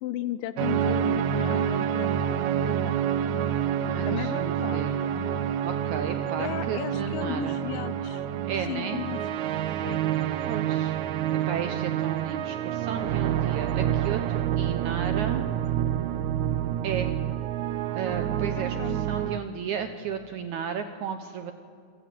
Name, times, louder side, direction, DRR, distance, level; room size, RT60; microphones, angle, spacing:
voice 1, 0.0-3.0 4.1-4.9 6.4-8.3 8.7-9.2 9.8-10.0 18.6-19.0, left 12 dB, 80° left, 14 dB, 2.2 m, -35 dB
sound 1, 0.6-19.4, right 10 dB, 90° right, 1.6 m, -28 dB
voice 2, 3.9-5.0 5.6-7.6 8.4-9.0 10.5-11.0 11.5-15.4 16.8-17.1 17.9-21.5, right 7 dB, 75° right, 8 dB, 1.8 m, -34 dB
28.0 x 17.5 x 7.7 m, 2.2 s
omnidirectional pair, 4.4 m